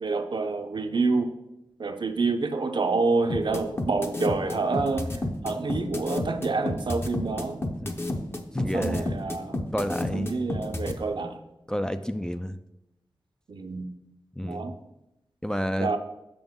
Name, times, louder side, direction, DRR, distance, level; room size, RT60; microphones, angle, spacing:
voice 1, 0.0-1.3 1.8-5.1 5.4-7.6 8.7-9.6 10.1-11.4 13.5-13.9 14.5-14.8 15.8-16.0, right 3 dB, 60° right, 7 dB, 0.7 m, -27 dB
sound 1, 3.3-10.9, left 2 dB, 25° left, 0.7 m, -30 dB
voice 2, 8.5-9.1 9.7-10.4 11.7-12.6 14.4-14.7 15.4-15.9, equal, 10° left, 8 dB, 0.3 m, -29 dB
6.9 x 6.1 x 3.7 m, 0.90 s
wide cardioid pair, 85°, 9 cm